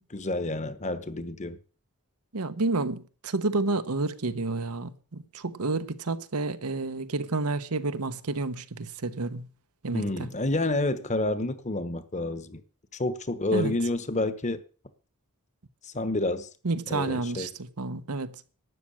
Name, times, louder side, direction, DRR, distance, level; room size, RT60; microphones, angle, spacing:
voice 1, 0.1-1.6 9.9-12.6 12.9-14.6 15.8-16.5 16.9-17.5, left 2 dB, 30° left, 1.1 m, -29 dB
voice 2, 2.3-9.5 9.8-10.3 13.5-13.7 16.6-18.3, right 3 dB, 85° right, 1.0 m, -30 dB
12.5 x 7.3 x 8.7 m
head